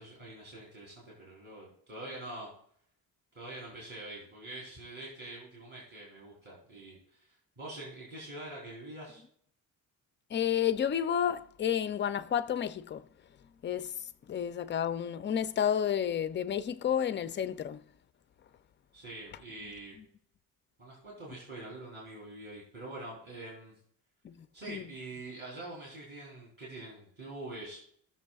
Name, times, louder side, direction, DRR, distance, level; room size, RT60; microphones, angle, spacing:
voice 1, 0.0-2.5 3.3-9.2 18.9-19.9 20.8-23.7 24.5-27.8, right 2 dB, 30° right, 3.4 m, -45 dB
voice 2, 10.3-13.0 13.6-14.0 14.3-17.8 24.2-24.8, left 9 dB, 30° left, 0.4 m, -31 dB
19.0 x 6.9 x 2.4 m
cardioid pair, 160°, 37 cm